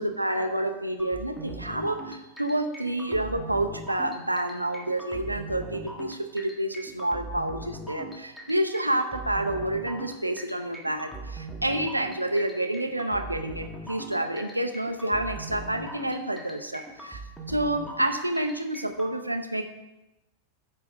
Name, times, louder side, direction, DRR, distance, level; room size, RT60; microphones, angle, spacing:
voice 1, 0.0-17.2 17.5-19.6, right 1 dB, 85° right, 6 dB, 0.7 m, -29 dB
sound 1, 1.0-19.1, right 2 dB, ahead, 1.6 m, -40 dB
9.4 x 6.0 x 5.0 m, 0.98 s
figure-of-eight pair, 90°, 0 cm